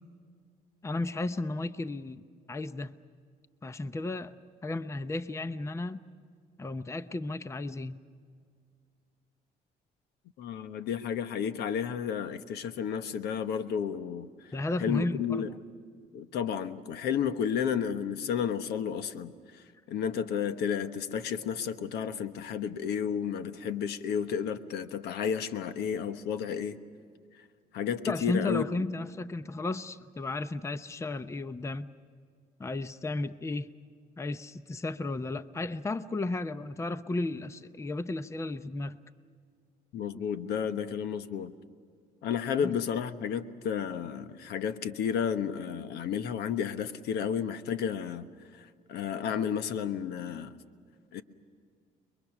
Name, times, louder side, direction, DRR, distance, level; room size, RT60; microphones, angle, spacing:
voice 1, 0.8-2.2 2.5-2.9 3.6-4.4 4.6-6.0 6.6-8.0 14.5-15.4 28.1-31.9 32.6-33.7 34.2-39.0 42.6-42.7, left 2 dB, 15° left, 0.7 m, -34 dB
voice 2, 10.4-14.5 14.8-15.5 16.1-26.8 27.4-27.5 27.7-28.8 39.9-41.5 42.2-48.3 48.5-50.6 51.1-51.2, left 7 dB, 75° left, 1.2 m, -32 dB
30.0 x 22.5 x 6.1 m
cardioid pair, 110°, 17 cm